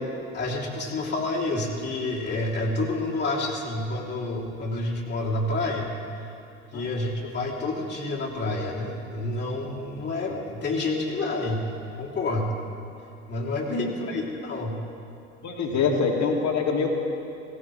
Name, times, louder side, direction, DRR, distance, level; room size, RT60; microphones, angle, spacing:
voice 1, 0.3-6.0 6.7-11.7 12.0-12.5 13.3-14.8 15.7-15.8, left 2 dB, 25° left, -3 dB, 2.9 m, -29 dB
voice 2, 15.4-16.9, left 5 dB, 40° left, 1 dB, 2.2 m, -24 dB
17.5 x 17.0 x 3.2 m, 2.7 s
figure-of-eight pair, 70°, 42 cm